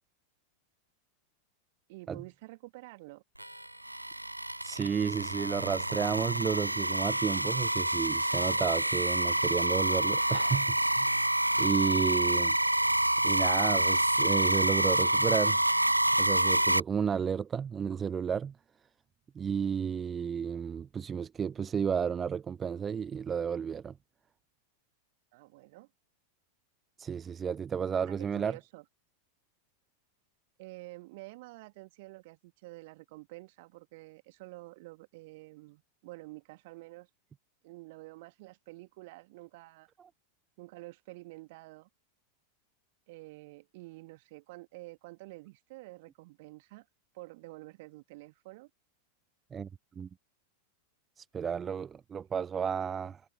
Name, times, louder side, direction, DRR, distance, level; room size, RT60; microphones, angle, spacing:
voice 1, 1.9-3.2 25.3-25.9 27.9-28.8 30.6-37.1 37.6-39.9 40.6-41.9 43.1-46.9 47.1-48.7, right 22 dB, 50° right, 2.4 m, -49 dB
sound 1, 3.4-16.8, right 1 dB, 85° right, 0.6 m, -27 dB
voice 2, 4.6-11.2 11.6-12.6 13.2-15.6 16.2-18.5 19.4-23.9 27.0-28.6 40.0-40.1 49.5-49.7 50.0-50.1 51.2-53.2, right 7 dB, 20° right, 0.4 m, -32 dB
figure-of-eight pair, 90°, 0 cm